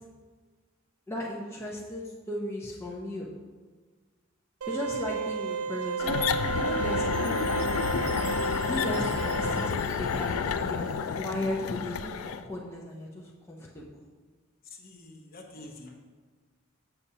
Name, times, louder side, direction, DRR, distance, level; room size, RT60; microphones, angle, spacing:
voice 1, 1.1-3.3 4.7-8.1 8.7-10.9 11.1-12.1 12.4-14.0, left 1 dB, 10° left, -4 dB, 0.6 m, -36 dB
sound 1, 4.6-9.7, right 5 dB, 85° right, 0.5 m, -32 dB
sound 2, 6.0-12.4, left 6 dB, 85° left, 0.3 m, -30 dB
Chime, 7.1-11.3, right 4 dB, 25° right, 0.6 m, -48 dB
voice 2, 14.8-15.9, left 1 dB, 45° left, 1 dB, 0.9 m, -47 dB
7.1 x 6.8 x 2.7 m, 1.4 s
head